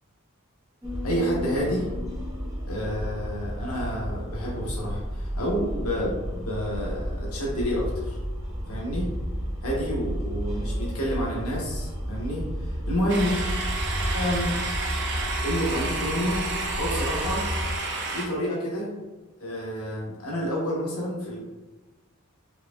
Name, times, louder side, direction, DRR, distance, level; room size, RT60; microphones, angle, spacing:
sound 1, 0.8-17.8, equal, 15° right, 0.8 m, -32 dB
voice 1, 1.0-1.9 2.7-8.2 8.7-9.1 9.6-13.3 14.1-14.5 15.4-16.5 16.7-17.5 18.1-18.9 19.4-21.4, equal, 80° left, -3 dB, 1.0 m, -29 dB
sound 2, 13.1-18.3, right 3 dB, 55° right, 0.6 m, -31 dB
4.7 x 2.8 x 2.2 m, 1.2 s
head